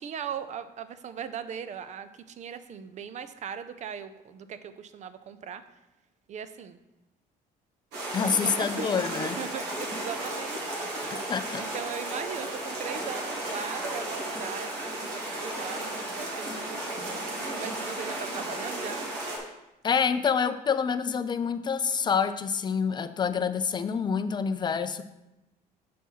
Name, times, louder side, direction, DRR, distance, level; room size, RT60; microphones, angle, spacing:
voice 1, 0.0-5.6 6.3-6.8 8.4-19.0, right 7 dB, 45° right, 12 dB, 0.5 m, -39 dB
sound 1, 7.9-19.4, right 1 dB, 85° right, 1.9 m, -34 dB
voice 2, 8.1-9.4 11.1-11.7 19.8-25.0, left 6 dB, 25° left, 11 dB, 0.4 m, -27 dB
6.2 x 4.2 x 5.4 m, 0.96 s
cardioid pair, 110°, 17 cm